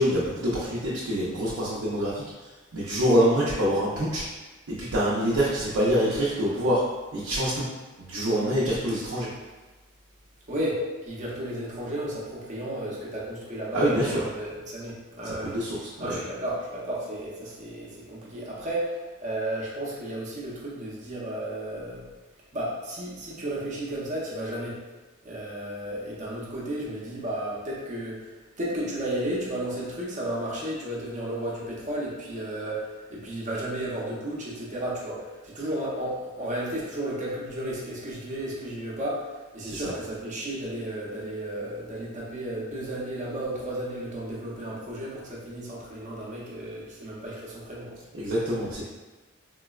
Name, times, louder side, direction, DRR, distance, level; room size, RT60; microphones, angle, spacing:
voice 1, 0.0-4.2 4.7-6.8 7.1-7.7 8.0-9.3 13.7-14.2 15.2-16.2 39.6-39.9 48.1-48.8, equal, 80° right, -8 dB, 0.6 m, -25 dB
voice 2, 10.5-15.6 16.0-22.0 22.5-24.8 25.2-48.0, right 1 dB, 35° right, -5 dB, 0.7 m, -33 dB
3.8 x 2.1 x 2.3 m, 1.2 s
head